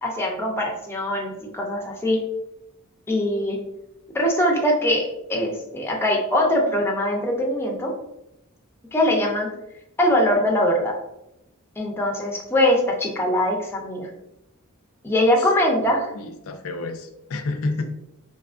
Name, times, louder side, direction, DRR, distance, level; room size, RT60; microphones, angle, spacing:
voice 1, 0.0-2.2 3.1-3.6 4.1-5.0 5.3-7.9 8.9-9.5 10.0-10.9 11.8-14.1 15.0-16.1, left 1 dB, 10° left, 0 dB, 0.5 m, -22 dB
voice 2, 16.0-17.8, left 3 dB, 65° left, 7 dB, 0.4 m, -30 dB
3.6 x 2.8 x 2.4 m, 0.85 s
head